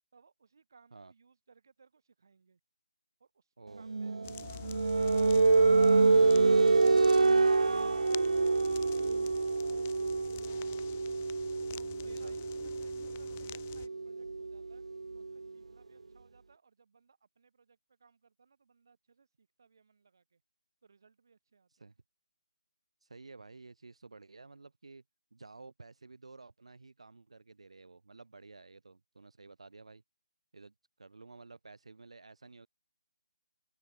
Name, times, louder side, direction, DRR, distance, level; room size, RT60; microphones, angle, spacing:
voice 1, 0.1-2.6 3.2-3.5 3.7-4.2 4.5-7.5 7.9-11.3 11.7-14.8 15.1-20.4 20.8-21.9, right 5 dB, 35° right, 7.2 m, -63 dB
voice 2, 3.6-4.3 8.8-9.0 12.0-12.3 21.8-21.9 23.0-25.0 25.3-30.0 30.5-32.7, right 3 dB, 65° right, 5.6 m, -53 dB
sound 1, 3.9-15.4, right 3 dB, 80° right, 0.5 m, -27 dB
sound 2, 4.2-13.9, left 15 dB, 15° left, 1.8 m, -48 dB
hypercardioid pair, 180°, 3 cm